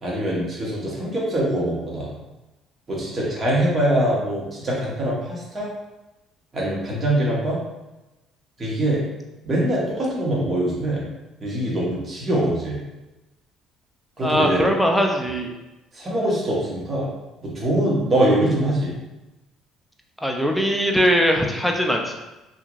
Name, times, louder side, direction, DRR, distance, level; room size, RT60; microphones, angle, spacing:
voice 1, 0.0-2.1 2.9-5.7 6.5-7.6 8.6-9.0 9.4-11.0 11.4-12.8 14.2-14.7 15.9-17.1 17.4-18.9, right 1 dB, 30° right, -5 dB, 1.1 m, -23 dB
voice 2, 14.2-15.5 20.2-22.1, equal, ahead, 1 dB, 0.4 m, -20 dB
2.8 x 2.5 x 2.4 m, 1.0 s
cardioid pair, 100°, 0 cm